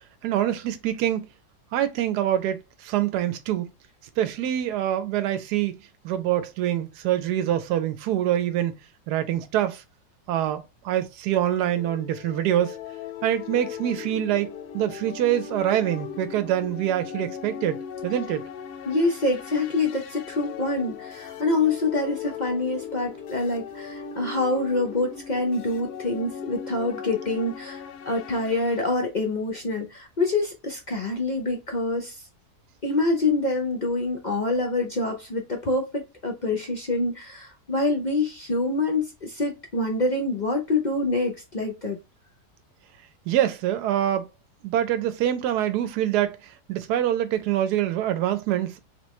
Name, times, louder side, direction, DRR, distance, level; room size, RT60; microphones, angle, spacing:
voice 1, 0.2-1.3 1.7-2.6 2.8-3.7 4.2-5.7 6.0-8.7 9.1-9.8 10.3-12.8 13.2-18.4 43.3-44.3 44.6-46.3 46.7-48.8, right 11 dB, 85° right, 1.1 m, -25 dB
sound 1, 11.6-28.9, left 7 dB, 80° left, 1.1 m, -38 dB
voice 2, 18.8-32.2 32.8-42.0, left 2 dB, 55° left, 0.5 m, -26 dB
3.8 x 3.0 x 3.1 m
omnidirectional pair, 1.7 m